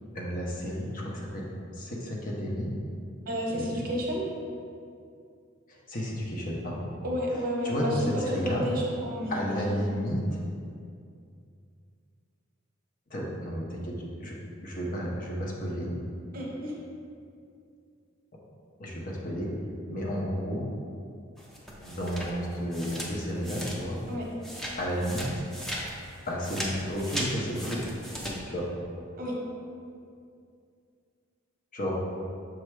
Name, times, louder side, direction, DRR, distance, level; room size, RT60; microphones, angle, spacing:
voice 1, 0.1-2.7 3.5-3.8 5.7-6.9 7.6-8.0 8.2-8.7 9.3-10.4 13.1-14.4 14.6-15.9 18.8-19.5 19.9-20.7 21.8-24.0 24.8-25.5 26.2-27.9 28.5-28.7 31.7-31.9, equal, 45° left, -3 dB, 0.9 m, -32 dB
voice 2, 3.3-4.3 7.0-10.0 16.3-16.7 24.1-24.3 29.2-29.3, equal, 50° right, -2 dB, 1.0 m, -31 dB
sound 1, 21.4-24.1 24.4-28.3, equal, ahead, 0.7 m, -37 dB
6.2 x 3.3 x 4.7 m, 2.4 s
head